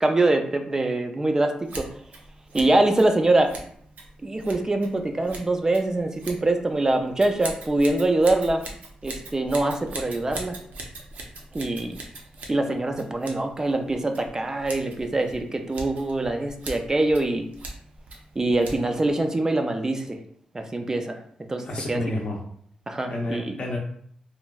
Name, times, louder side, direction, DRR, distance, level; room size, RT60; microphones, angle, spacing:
voice 1, 0.0-1.9 2.5-3.5 4.2-8.6 9.0-10.6 11.5-12.0 12.5-17.5 18.4-20.2 20.5-21.2 21.5-22.0 22.9-23.6, right 2 dB, 25° right, 5 dB, 0.3 m, -24 dB
Scissors, 1.6-19.1, right 2 dB, 85° right, 0.6 m, -41 dB
voice 2, 21.6-22.4 23.1-23.8, left 1 dB, 50° left, -2 dB, 0.5 m, -29 dB
3.0 x 2.5 x 2.3 m, 0.63 s
cardioid pair, 95°, 3 cm